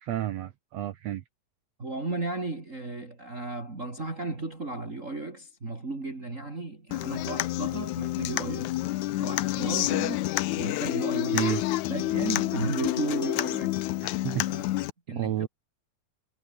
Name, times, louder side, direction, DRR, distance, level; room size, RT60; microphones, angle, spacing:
voice 1, 0.0-1.2 11.3-11.6 14.2-14.5 15.1-15.5, right 13 dB, 65° right, 2.0 m, -30 dB
voice 2, 1.8-8.8 9.2-10.2 10.6-11.4 11.9-13.8 14.5-14.6 15.1-15.5, right 2 dB, 25° right, 3.8 m, -34 dB
Human voice / Acoustic guitar, 6.9-14.9, left 16 dB, 85° left, 2.2 m, -29 dB
omnidirectional pair, 3.3 m